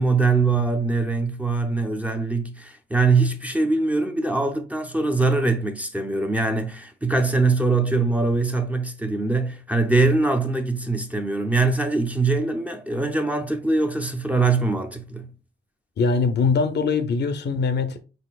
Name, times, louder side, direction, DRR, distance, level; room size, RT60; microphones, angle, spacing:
voice 1, 0.0-15.3, right 3 dB, 5° right, 0.5 m, -22 dB
voice 2, 16.0-18.0, left 4 dB, 55° left, 0.5 m, -22 dB
4.9 x 4.1 x 2.3 m
cardioid pair, 125°, 21 cm